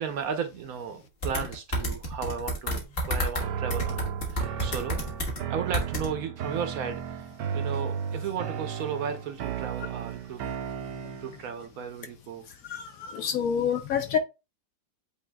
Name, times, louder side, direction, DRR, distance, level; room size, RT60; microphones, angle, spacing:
voice 1, 0.0-10.6 11.2-12.5, right 7 dB, 65° right, 1.0 m, -35 dB
sound 1, 1.2-3.4 3.7-5.4 5.7-6.1, equal, 40° left, 1.3 m, -29 dB
sound 2, 3.4-11.5, right 7 dB, 85° right, 1.2 m, -34 dB
voice 2, 12.7-14.2, left 8 dB, 70° left, 0.9 m, -27 dB
8.4 x 2.8 x 2.2 m
omnidirectional pair, 1.8 m